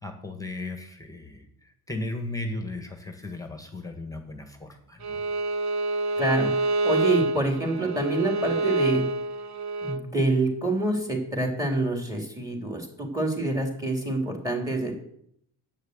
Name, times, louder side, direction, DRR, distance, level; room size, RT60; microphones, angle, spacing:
voice 1, 0.0-1.5 1.9-5.2, left 2 dB, 10° left, 5 dB, 1.7 m, -36 dB
Bowed string instrument, 5.0-10.0, right 2 dB, 45° right, 1.1 m, -27 dB
voice 2, 6.2-6.5 6.8-9.1 9.8-14.9, right 2 dB, 10° right, 1 dB, 3.2 m, -26 dB
9.1 x 6.5 x 8.0 m, 0.70 s
cardioid pair, 100°, 39 cm